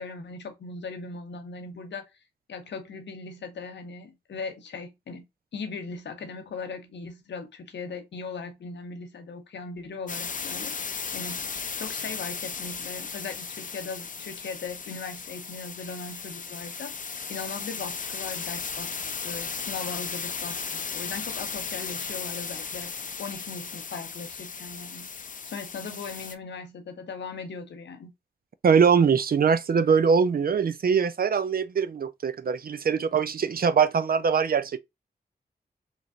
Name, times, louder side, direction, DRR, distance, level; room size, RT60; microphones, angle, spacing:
voice 1, 0.0-2.0 2.5-5.3 5.5-11.4 11.8-16.9 17.3-18.9 19.2-25.1 25.5-28.1, left 4 dB, 85° left, 0.7 m, -38 dB
sound 1, 10.1-26.4, left 5 dB, 50° left, 0.5 m, -36 dB
voice 2, 28.6-34.8, right 6 dB, 55° right, 0.4 m, -22 dB
3.2 x 2.9 x 2.5 m
cardioid pair, 45°, 18 cm